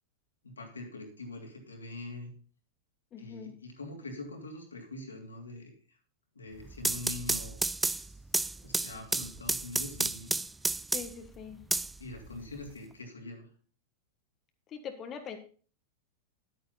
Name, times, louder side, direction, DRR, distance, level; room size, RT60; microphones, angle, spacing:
voice 1, 0.4-2.3 3.2-6.0 6.3-8.2 8.6-10.4 12.0-13.5, left 2 dB, 90° left, 2 dB, 2.9 m, -44 dB
voice 2, 3.1-3.5 10.9-11.6 14.7-15.4, left 7 dB, 35° left, 6 dB, 1.5 m, -42 dB
sound 1, 6.6-11.3 11.7-12.7, right 3 dB, 10° right, 0.4 m, -31 dB
10.0 x 9.1 x 4.0 m, 0.39 s
hypercardioid pair, 95°, 0 cm